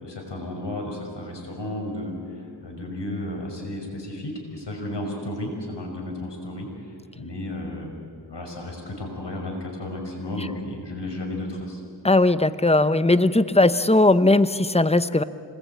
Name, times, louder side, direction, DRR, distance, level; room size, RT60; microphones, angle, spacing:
voice 1, 0.0-7.9 8.3-11.8, left 1 dB, 75° left, 1 dB, 5.9 m, -33 dB
voice 2, 12.0-15.2, left 2 dB, 15° left, 13 dB, 0.9 m, -18 dB
27.0 x 20.5 x 8.7 m, 2.4 s
wide cardioid pair, 55°, 42 cm